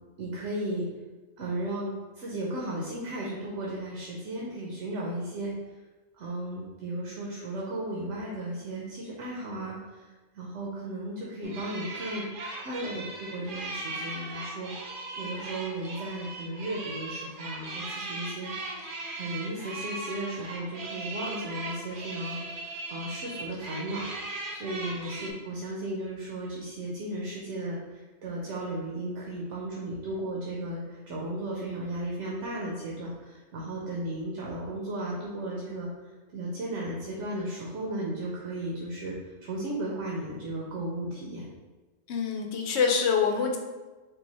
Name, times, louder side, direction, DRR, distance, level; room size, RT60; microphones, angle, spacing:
voice 1, 0.2-0.9 1.4-5.5 6.2-10.0 10.3-12.3 12.6-14.7 15.2-18.5 19.2-24.0 24.5-35.9 36.3-39.1 39.4-41.4, right 1 dB, 85° right, -4 dB, 1.0 m, -35 dB
sound 1, 11.4-25.3, right 2 dB, 55° right, 0.7 m, -38 dB
voice 2, 42.1-43.6, left 6 dB, 75° left, 3 dB, 0.9 m, -25 dB
3.9 x 2.3 x 4.0 m, 1.2 s
omnidirectional pair, 1.2 m